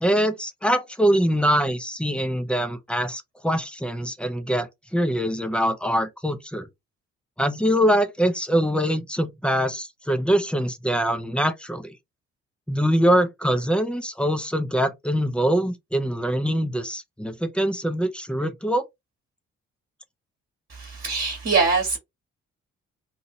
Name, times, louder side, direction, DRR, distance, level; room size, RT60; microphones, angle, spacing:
voice 1, 0.0-6.7 7.4-11.9 12.7-18.8, equal, 5° left, 0.7 m, -23 dB
voice 2, 20.7-22.0, right 4 dB, 35° right, 1.4 m, -23 dB
2.9 x 2.7 x 2.6 m
hypercardioid pair, 40°, 34 cm